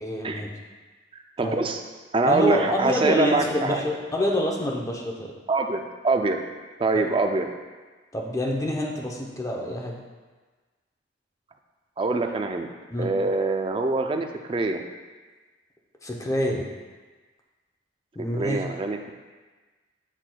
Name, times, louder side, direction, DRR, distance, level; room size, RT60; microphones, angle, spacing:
voice 1, 0.0-0.5 1.4-1.6 2.3-5.3 6.9-7.0 8.1-10.0 12.9-13.1 16.0-16.7 18.2-18.6, left 1 dB, 15° left, -1 dB, 0.6 m, -27 dB
voice 2, 1.4-1.8 2.1-3.8 5.5-6.4 6.8-7.5 12.0-12.7 13.0-14.8 18.3-19.0, right 3 dB, 25° right, 5 dB, 0.4 m, -24 dB
8.0 x 5.9 x 2.2 m, 1.3 s
head